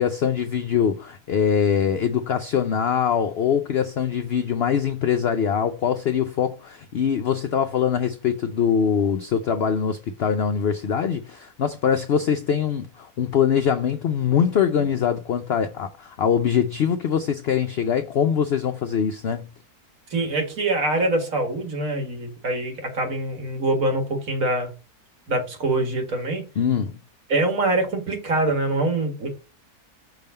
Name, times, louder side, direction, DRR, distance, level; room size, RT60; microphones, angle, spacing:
voice 1, 0.0-19.5 26.6-27.0, left 7 dB, 70° left, 0.6 m, -23 dB
voice 2, 20.1-24.7 25.3-26.5 27.3-29.3, right 2 dB, 60° right, 2.1 m, -24 dB
5.9 x 3.6 x 5.3 m
omnidirectional pair, 1.6 m